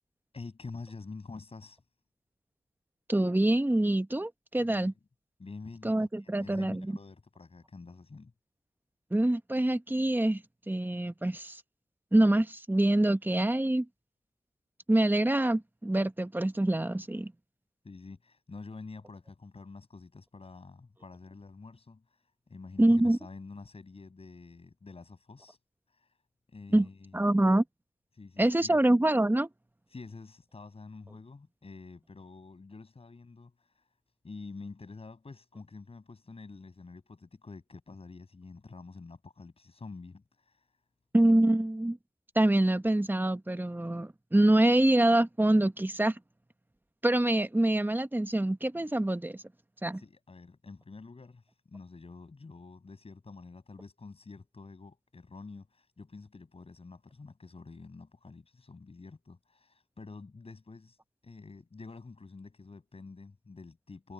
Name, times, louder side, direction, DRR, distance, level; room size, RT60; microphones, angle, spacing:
voice 1, 0.3-1.8 4.6-4.9 5.4-8.3 17.8-22.0 22.5-25.6 25.9-26.1 26.5-27.2 28.1-28.8 29.9-33.8 34.2-40.6 49.9-61.0 61.2-64.1, left 3 dB, 60° left, 7.2 m, -48 dB
voice 2, 3.1-4.9 5.8-7.0 9.1-11.6 12.1-13.9 14.9-17.3 22.8-23.2 26.7-26.9 27.1-27.6 28.4-29.5 41.1-42.0 42.3-46.2 47.0-49.4 49.8-50.0, right 1 dB, 15° right, 1.2 m, -25 dB
cardioid pair, 45°, 11 cm